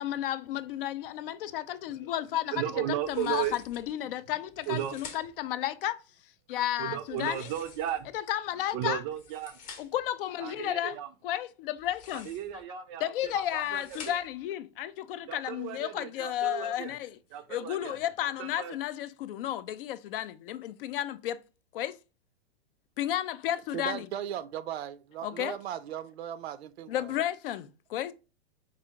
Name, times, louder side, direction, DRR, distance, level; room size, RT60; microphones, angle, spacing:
voice 1, 0.0-2.6 3.1-6.0 6.5-7.5 8.1-9.0 9.8-11.0 11.2-12.3 12.7-17.2 17.5-21.4 21.7-21.9 23.0-24.1 25.2-25.6 26.9-28.1, left 12 dB, 60° left, 0.4 m, -33 dB
voice 2, 2.5-3.6 4.7-5.0 6.8-8.1 8.7-9.6 10.4-11.1 12.2-14.2 15.3-16.9 17.3-18.0 18.4-18.7, right 11 dB, 30° right, 0.4 m, -35 dB
sound 1, 3.0-3.9 4.5-5.5 7.1-8.2 9.0-10.1 11.8-12.6 13.2-14.5, left 6 dB, 25° left, 0.8 m, -49 dB
voice 3, 23.7-27.1, right 10 dB, 80° right, 0.5 m, -37 dB
4.8 x 2.5 x 2.8 m
hypercardioid pair, 140°, 31 cm